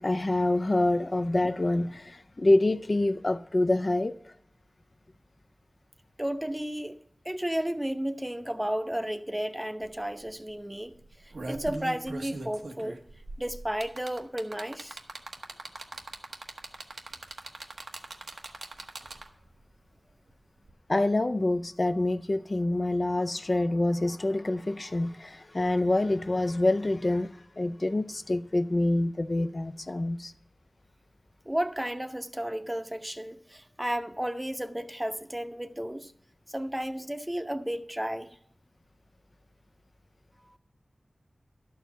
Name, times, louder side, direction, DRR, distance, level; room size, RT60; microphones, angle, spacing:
voice 1, 0.0-4.1 20.9-27.3 27.6-30.3, left 2 dB, 45° left, 0.5 m, -26 dB
voice 2, 6.2-7.0 7.2-10.9 11.5-13.0 13.4-15.0 31.5-36.1 36.5-38.3, right 1 dB, 10° right, 0.7 m, -33 dB
sound 1, 9.8-9.9 10.2-10.5 11.0-19.5 20.6-20.7, right 2 dB, 90° right, 1.0 m, -41 dB
12.0 x 4.7 x 8.0 m
wide cardioid pair, 55°, 0 cm